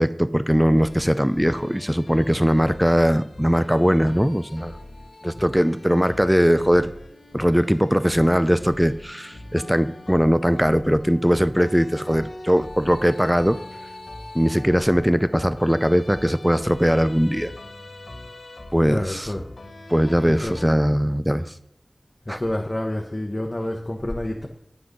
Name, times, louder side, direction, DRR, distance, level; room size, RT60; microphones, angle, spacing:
voice 1, 0.0-4.7 5.2-6.9 7.3-13.6 14.3-17.5 18.7-19.3 19.9-21.5 22.3-22.4, equal, 5° right, 14 dB, 0.5 m, -20 dB
sound 1, 0.8-20.7, left 1 dB, 85° left, 1.1 m, -41 dB
voice 2, 18.9-19.4 20.4-20.6 22.3-24.5, left 1 dB, 35° left, 1 dB, 1.1 m, -28 dB
9.5 x 6.1 x 5.2 m, 0.80 s
wide cardioid pair, 50°, 0 cm